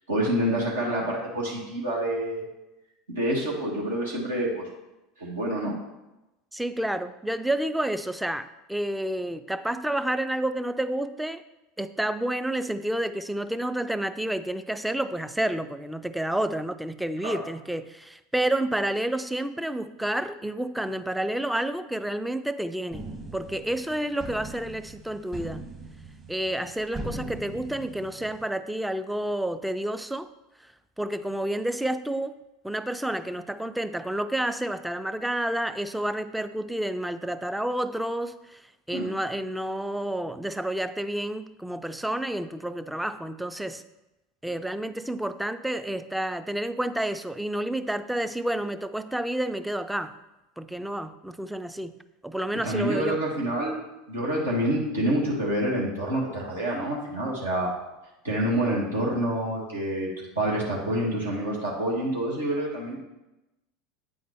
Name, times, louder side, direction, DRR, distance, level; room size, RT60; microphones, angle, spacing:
voice 1, 0.1-2.4 3.1-4.7 5.2-5.8 17.2-17.4 38.9-39.1 52.6-53.8 54.1-57.7 58.2-60.1 60.3-63.0, right 1 dB, 80° right, -4 dB, 1.3 m, -27 dB
voice 2, 6.5-11.4 11.8-23.0 23.3-25.6 26.3-30.3 31.0-32.4 32.6-38.6 38.9-43.8 44.4-50.1 50.6-52.0 52.2-53.2, right 1 dB, 5° right, 11 dB, 0.3 m, -30 dB
sound 1, 22.9-28.5, right 2 dB, 25° right, 1.2 m, -40 dB
8.5 x 3.9 x 3.4 m, 0.97 s
figure-of-eight pair, 75°, 0 cm